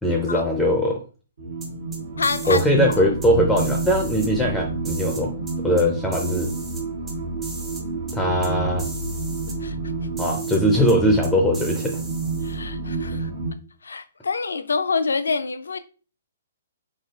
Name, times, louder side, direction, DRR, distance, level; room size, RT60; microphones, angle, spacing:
voice 1, 0.0-1.0 2.5-5.3 5.6-6.5 8.1-8.9 10.2-12.0, equal, 5° left, 0.5 m, -20 dB
sound 1, 1.4-13.5, right 3 dB, 70° right, 1.0 m, -29 dB
sound 2, 1.6-2.7 2.9-3.3 3.6-4.3 4.8-5.8 6.1-7.1 7.4-7.8 8.1-8.2 8.4-8.5 8.8-9.6 10.2-10.6 10.9-11.0 11.2-12.5, right 2 dB, 15° right, 0.8 m, -38 dB
voice 2, 2.2-2.6 9.6-9.7 12.4-13.3 13.8-15.8, left 4 dB, 85° left, 0.4 m, -26 dB
3.6 x 3.2 x 2.4 m
hypercardioid pair, 140°, 0 cm